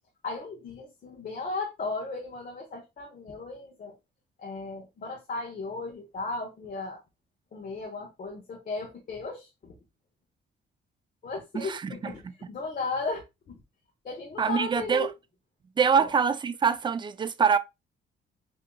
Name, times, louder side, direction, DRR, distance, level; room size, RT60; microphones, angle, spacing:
voice 1, 0.2-3.9 4.4-7.0 7.5-9.8 11.2-13.6 14.0-15.1 16.0-16.1, left 3 dB, 45° left, 1.0 m, -36 dB
voice 2, 11.5-12.1 14.4-15.1 15.8-17.6, right 6 dB, 25° right, 0.4 m, -24 dB
5.0 x 2.8 x 2.3 m
cardioid pair, 90°, 20 cm